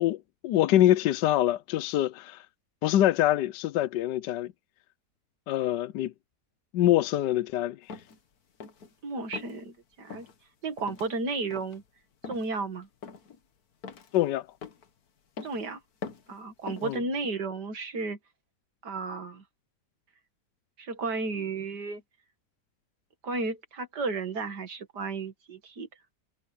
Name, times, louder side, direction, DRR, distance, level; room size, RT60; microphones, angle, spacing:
voice 1, 0.0-2.4 2.8-4.5 5.5-6.1 6.7-7.8 14.1-14.5 16.8-17.0, left 13 dB, 80° left, 1.3 m, -25 dB
sound 1, 7.9-8.2 8.6-8.9 9.3-9.6 10.1-10.3 10.8-11.1 11.5-11.8 12.2-12.5 13.0-13.4 13.8-14.2 14.6-14.9 15.4-15.6 16.0-16.4 16.7-17.0, left 5 dB, 60° left, 1.9 m, -42 dB
voice 2, 9.0-10.3 10.6-11.8 12.3-12.9 15.4-15.8 16.3-18.2 18.8-19.4 20.8-22.0 23.2-25.9, right 3 dB, 70° right, 2.6 m, -33 dB
omnidirectional pair, 1.8 m